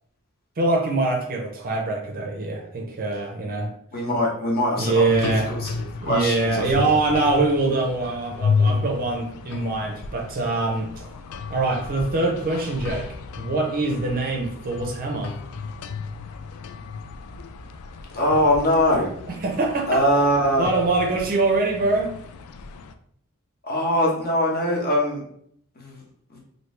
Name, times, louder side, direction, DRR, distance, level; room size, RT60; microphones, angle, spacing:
voice 1, 0.6-3.7 4.8-5.5 6.0-11.0 11.5-13.1 13.4-15.4 19.3-20.0 20.6-22.1, right 3 dB, 40° right, 1 dB, 0.5 m, -24 dB
voice 2, 3.9-6.9 18.1-19.1 19.9-20.7 23.6-25.2 25.8-26.0 26.3-26.4, equal, 45° left, -2 dB, 1.0 m, -22 dB
sound 1, 5.0-22.9, left 4 dB, 70° left, 0.3 m, -32 dB
3.0 x 2.7 x 3.2 m, 0.67 s
head